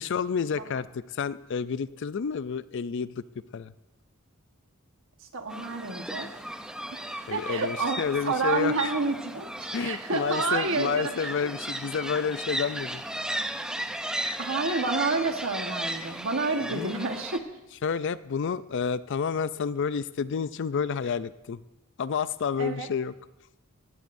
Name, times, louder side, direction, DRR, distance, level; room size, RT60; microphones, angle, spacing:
voice 1, 0.0-3.2 3.5-3.7 7.3-8.9 9.7-13.0 16.6-16.9 17.8-21.6 22.0-23.1, left 6 dB, 60° left, 16 dB, 0.4 m, -30 dB
voice 2, 5.3-6.3 6.9-7.0 7.3-11.3 14.4-17.4 22.6-22.9, right 3 dB, 65° right, 5 dB, 1.4 m, -29 dB
sound 1, 5.5-17.4, right 1 dB, 5° right, 0.5 m, -35 dB
17.5 x 15.5 x 2.6 m, 0.93 s
head